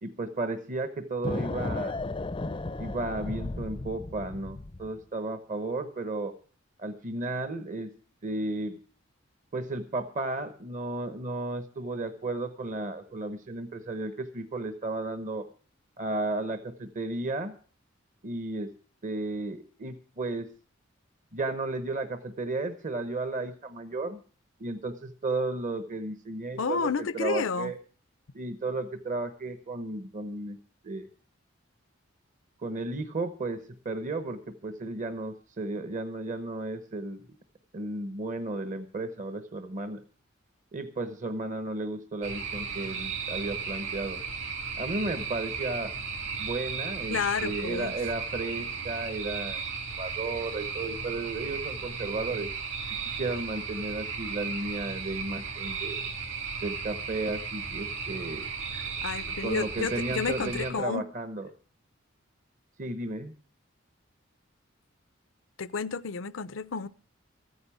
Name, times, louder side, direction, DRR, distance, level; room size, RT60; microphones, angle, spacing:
voice 1, 0.0-1.9 2.8-6.3 6.8-7.9 8.2-8.8 9.5-15.5 16.0-17.5 18.2-18.7 19.0-20.5 21.3-24.2 24.6-27.8 28.3-30.6 30.8-31.1 32.6-37.4 37.7-40.0 40.7-44.2 44.8-45.9 46.4-49.6 50.0-52.5 53.2-56.0 56.6-58.5 59.4-61.5 62.8-63.4, right 2 dB, 40° right, 1.0 m, -34 dB
sound 1, 1.2-5.0, left 2 dB, 25° left, 0.6 m, -34 dB
voice 2, 26.6-27.7 47.1-47.9 59.0-61.0 65.6-66.9, left 5 dB, 75° left, 0.6 m, -31 dB
sound 2, 42.2-60.7, right 5 dB, 65° right, 3.6 m, -35 dB
14.0 x 9.5 x 7.1 m
head